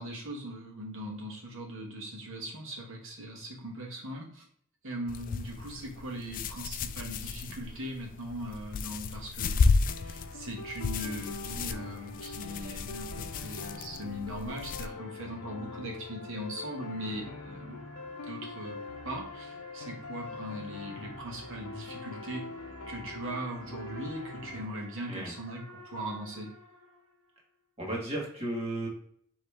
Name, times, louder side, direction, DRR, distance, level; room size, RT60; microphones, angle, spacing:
voice 1, 0.0-4.5 4.8-17.8 18.3-18.8 19.0-22.4 22.9-26.5, equal, 65° right, 0 dB, 1.3 m, -40 dB
sound 1, 5.1-14.9, left 4 dB, 40° left, 0.3 m, -33 dB
sound 2, 9.9-24.7, left 3 dB, 75° left, 0.6 m, -43 dB
sound 3, 14.7-27.4, equal, 90° right, 1.4 m, -53 dB
voice 2, 27.8-28.9, right 1 dB, 30° right, -3 dB, 1.7 m, -34 dB
5.0 x 3.1 x 3.4 m, 0.62 s
head